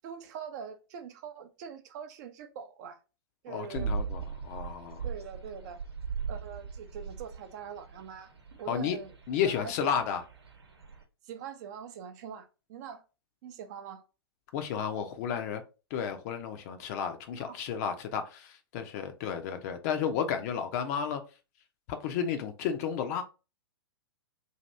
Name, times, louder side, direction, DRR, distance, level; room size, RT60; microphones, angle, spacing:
voice 1, 0.0-3.0 3.4-3.9 5.0-5.8 6.3-8.3 8.6-9.1 9.6-9.9 11.2-13.0 13.4-14.0 17.4-17.5, right 7 dB, 40° right, 0.5 m, -43 dB
voice 2, 3.5-5.0 8.7-9.0 9.3-10.2 14.5-15.6 15.9-21.2 21.9-23.2, left 8 dB, 40° left, 0.6 m, -32 dB
sound 1, 3.8-11.0, right 5 dB, 75° right, 0.9 m, -39 dB
2.7 x 2.6 x 3.2 m
figure-of-eight pair, 110°, 13 cm